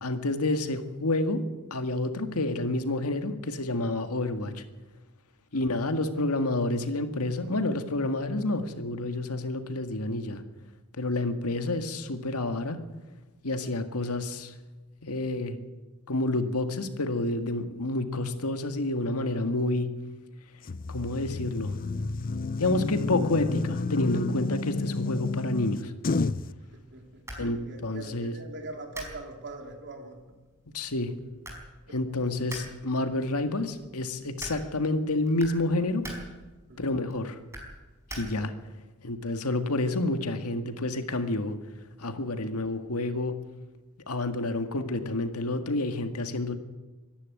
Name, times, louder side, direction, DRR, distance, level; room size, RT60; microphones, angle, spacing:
voice 1, 0.0-1.4 1.7-4.6 5.5-10.4 11.0-12.8 13.4-14.5 15.0-15.6 16.1-19.9 20.9-21.7 22.6-25.9 27.4-28.3 30.7-31.1 31.9-36.0 36.8-37.4 38.1-38.5 39.0-41.6 42.0-43.4 44.1-46.6, left 2 dB, 80° left, 7 dB, 1.8 m, -29 dB
sound 1, 20.7-26.5, left 3 dB, 40° left, 0.5 m, -30 dB
sound 2, 26.7-38.7, right 1 dB, 15° right, 4.8 m, -46 dB
voice 2, 26.7-30.4 31.9-32.0 36.7-36.8 42.3-42.4, right 2 dB, 55° right, 3 dB, 3.6 m, -43 dB
24.5 x 11.5 x 9.5 m, 1.2 s
head